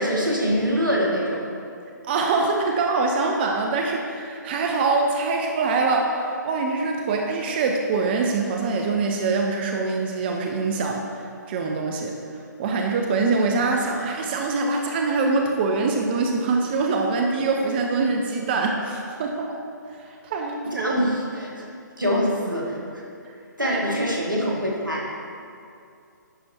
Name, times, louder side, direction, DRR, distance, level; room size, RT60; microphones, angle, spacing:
voice 1, 0.0-1.4 20.7-21.6 22.0-23.0 23.6-25.2, equal, 85° right, -3 dB, 1.9 m, -24 dB
voice 2, 2.1-11.2 11.5-12.2 12.6-19.6 20.0-21.0 23.3-23.4 23.6-24.0, right 3 dB, 30° right, 2 dB, 0.6 m, -24 dB
10.5 x 4.4 x 4.4 m, 2.4 s
figure-of-eight pair, 135°, 10 cm